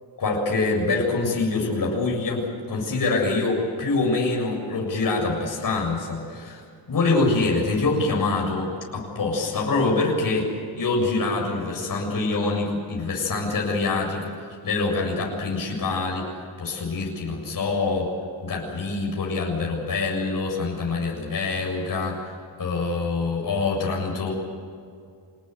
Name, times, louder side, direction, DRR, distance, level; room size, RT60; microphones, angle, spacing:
voice 1, 0.2-6.6 6.9-10.5 10.8-16.3 16.6-18.1 18.4-24.3, left 3 dB, 45° left, -1 dB, 7.3 m, -25 dB
26.5 x 20.0 x 8.2 m, 2.4 s
cardioid pair, 115°, 46 cm